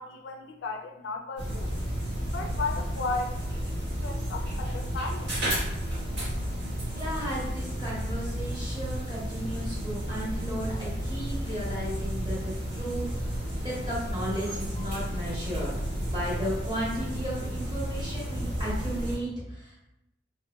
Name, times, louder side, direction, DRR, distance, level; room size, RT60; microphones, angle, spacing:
voice 1, 0.0-1.7 2.3-3.8 4.0-5.4, left 3 dB, 70° left, 4 dB, 0.3 m, -35 dB
sound 1, 1.4-19.2, equal, 60° right, 1.4 m, -32 dB
voice 2, 6.9-19.8, equal, 25° right, -7 dB, 1.2 m, -35 dB
2.9 x 2.9 x 2.2 m, 0.86 s
head